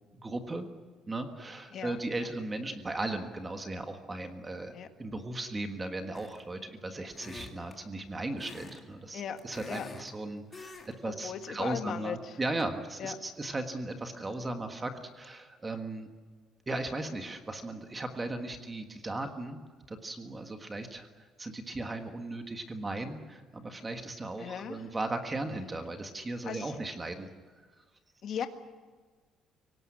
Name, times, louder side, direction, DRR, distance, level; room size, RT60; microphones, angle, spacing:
voice 1, 0.1-0.7 1.1-4.7 5.0-16.1 16.7-19.6 19.9-27.3, right 2 dB, 15° right, 6 dB, 1.5 m, -37 dB
sound 1, 6.1-6.5 7.1-7.8 8.4-8.8 9.1-10.1 10.5-10.9 11.2-11.4, left 3 dB, 20° left, 2.5 m, -46 dB
voice 2, 11.0-12.4 13.0-13.1 24.4-24.8 26.4-26.8 28.2-28.5, left 8 dB, 45° left, 7 dB, 1.7 m, -37 dB
25.0 x 18.0 x 9.9 m, 1.4 s
cardioid pair, 180°, 0 cm